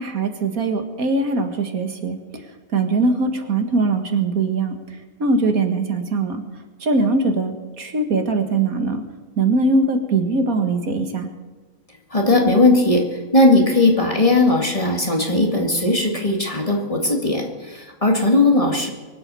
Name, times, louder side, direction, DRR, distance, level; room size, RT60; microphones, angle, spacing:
voice 1, 0.0-2.2 2.7-4.8 5.2-6.4 6.8-9.0 9.4-11.3, right 3 dB, 75° right, 6 dB, 2.2 m, -21 dB
voice 2, 12.1-13.1 13.3-18.9, left 2 dB, 25° left, 2 dB, 2.1 m, -18 dB
23.5 x 8.3 x 6.9 m, 1.3 s
omnidirectional pair, 1.5 m